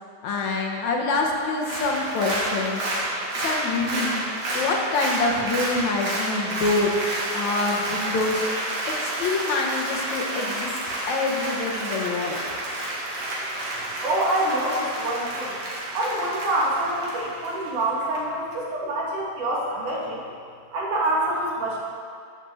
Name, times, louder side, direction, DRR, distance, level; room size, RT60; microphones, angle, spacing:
voice 1, 0.2-2.8 3.3-4.2 4.5-8.4 9.0-10.8 11.1-12.4, left 3 dB, 70° left, 0 dB, 2.5 m, -26 dB
Applause, 1.5-18.2 18.5-18.6, right 1 dB, 55° right, 3.2 m, -30 dB
voice 2, 14.0-15.6 15.9-20.2 20.7-21.8, right 1 dB, 80° right, -5 dB, 3.7 m, -26 dB
12.0 x 7.2 x 7.1 m, 2.2 s
omnidirectional pair, 3.5 m